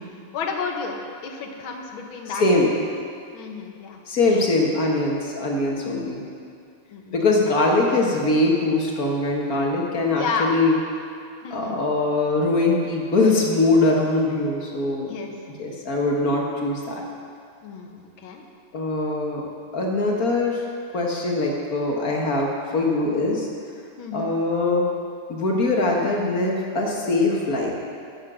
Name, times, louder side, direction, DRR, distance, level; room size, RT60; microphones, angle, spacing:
voice 1, 0.3-1.0 1.2-2.7 3.3-4.0 4.3-4.4 5.8-6.0 6.9-7.3 10.2-10.6 11.4-11.8 15.1-15.3 17.6-18.4 24.0-24.3, left 5 dB, 75° left, 2 dB, 1.9 m, -31 dB
voice 2, 2.4-2.7 4.1-6.2 7.1-10.8 11.5-15.1 15.6-17.0 18.7-19.5 19.7-20.7 20.9-23.5 24.1-24.9 25.3-27.7, left 2 dB, 50° left, -1 dB, 1.7 m, -22 dB
12.5 x 7.5 x 6.2 m, 2.3 s
omnidirectional pair, 2.3 m